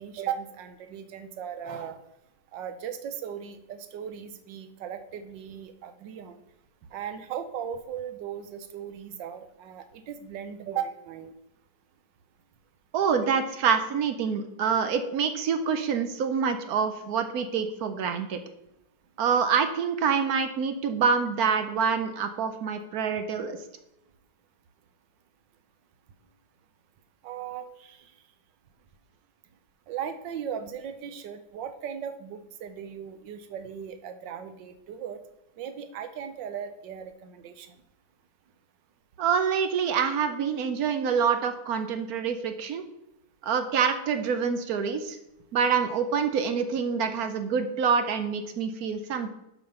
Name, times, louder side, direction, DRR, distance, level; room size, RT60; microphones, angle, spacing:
voice 1, 0.0-2.0 2.5-6.4 6.9-11.3 27.2-28.0 29.9-35.2 35.6-37.7, right 8 dB, 90° right, 9 dB, 1.5 m, -37 dB
voice 2, 12.9-18.4 19.2-23.6 39.2-42.8 43.4-45.2 45.5-49.3, right 6 dB, 65° right, 8 dB, 1.1 m, -26 dB
7.6 x 5.1 x 5.5 m, 0.87 s
omnidirectional pair, 1.9 m